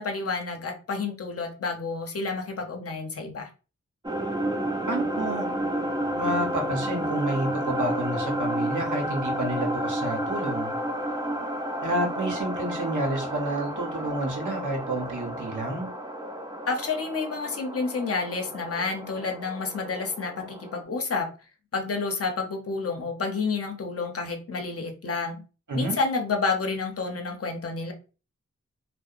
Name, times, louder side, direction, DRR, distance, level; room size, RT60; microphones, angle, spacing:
voice 1, 0.0-3.5 16.7-21.3 21.7-25.4 25.7-27.9, left 4 dB, 50° left, 3 dB, 0.6 m, -29 dB
sound 1, 4.0-20.8, right 1 dB, 15° right, 0.4 m, -31 dB
voice 2, 4.9-5.6 6.1-10.8 11.8-15.9 25.7-26.0, right 1 dB, 85° right, 2 dB, 0.8 m, -29 dB
2.7 x 2.0 x 2.4 m, 0.33 s
wide cardioid pair, 80°, 30 cm